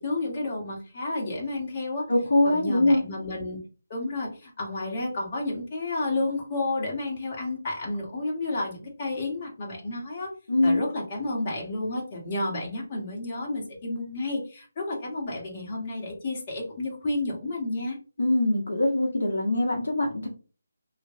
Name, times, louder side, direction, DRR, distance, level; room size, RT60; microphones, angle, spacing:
voice 1, 0.0-2.1 2.4-3.6 3.9-10.3 10.6-18.0, left 2 dB, 35° left, -2 dB, 1.3 m, -31 dB
voice 2, 2.1-3.0 10.5-10.8 18.2-20.3, left 1 dB, 65° left, -1 dB, 1.1 m, -23 dB
3.1 x 3.1 x 2.6 m, 0.36 s
figure-of-eight pair, 155°, 0 cm